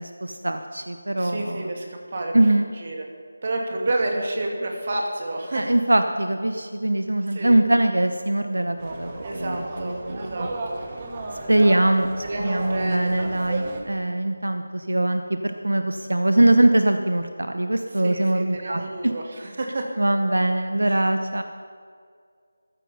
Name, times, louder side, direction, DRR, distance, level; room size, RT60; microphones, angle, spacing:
voice 1, 0.0-1.7 2.3-2.7 5.5-10.5 11.5-19.1 20.0-21.4, right 1 dB, 85° right, 7 dB, 0.9 m, -22 dB
voice 2, 1.2-2.4 2.7-3.1 3.4-5.7 7.2-7.6 9.2-10.8 11.6-11.8 12.2-13.2 17.9-19.9 20.8-20.9, right 2 dB, 45° right, 1 dB, 2.6 m, -30 dB
sound 1, 8.8-13.8, right 2 dB, 25° right, 1.6 m, -34 dB
15.0 x 13.5 x 5.6 m, 2.2 s
figure-of-eight pair, 165°, 0 cm